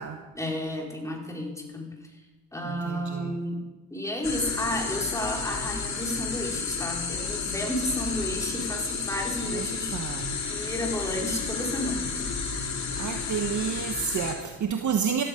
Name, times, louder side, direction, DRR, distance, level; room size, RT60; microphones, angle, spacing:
voice 1, 0.3-1.9 2.5-3.6 3.9-10.0 10.5-12.2, left 1 dB, 10° left, -1 dB, 4.4 m, -32 dB
voice 2, 2.6-3.4 9.5-9.7 9.9-10.4 13.0-15.2, right 7 dB, 55° right, 4 dB, 1.3 m, -30 dB
sound 1, 4.2-14.4, left 5 dB, 50° left, 2.8 m, -32 dB
15.0 x 14.0 x 5.2 m, 1.2 s
cardioid pair, 75°, 36 cm